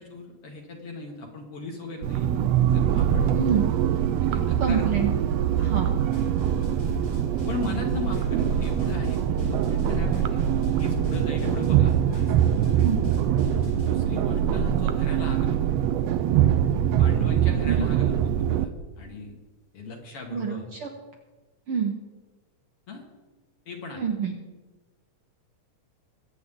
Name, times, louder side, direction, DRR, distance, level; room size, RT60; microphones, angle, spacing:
voice 1, 0.1-3.3 4.2-5.2 5.6-5.7 7.5-10.5 10.8-12.2 13.8-15.6 17.0-18.7 19.0-19.4 19.7-20.7 22.9-23.0 23.7-24.0, left 3 dB, 55° left, 1 dB, 2.3 m, -38 dB
sound 1, 2.0-18.7, right 10 dB, 85° right, 1.5 m, -23 dB
voice 2, 3.3-3.6 4.6-5.1 5.6-5.9 12.8-13.0 17.6-17.9 20.3-20.9 21.7-22.0 24.0-24.3, right 6 dB, 65° right, 2 dB, 1.5 m, -27 dB
sound 2, 6.0-13.9, left 5 dB, 75° left, 7.1 m, -36 dB
22.5 x 8.4 x 3.7 m, 1.2 s
omnidirectional pair, 3.6 m